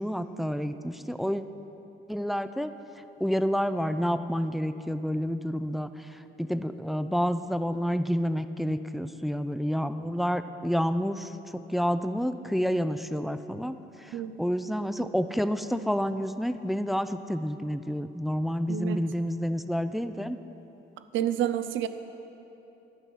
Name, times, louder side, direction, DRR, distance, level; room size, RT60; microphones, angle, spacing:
voice 1, 0.0-1.4 2.1-2.7 3.2-5.9 6.4-13.8 14.0-20.4, equal, ahead, 10 dB, 0.4 m, -29 dB
voice 2, 18.7-19.0 21.1-21.9, right 10 dB, 75° right, 11 dB, 0.6 m, -28 dB
11.0 x 5.9 x 8.4 m, 3.0 s
cardioid pair, 90°, 20 cm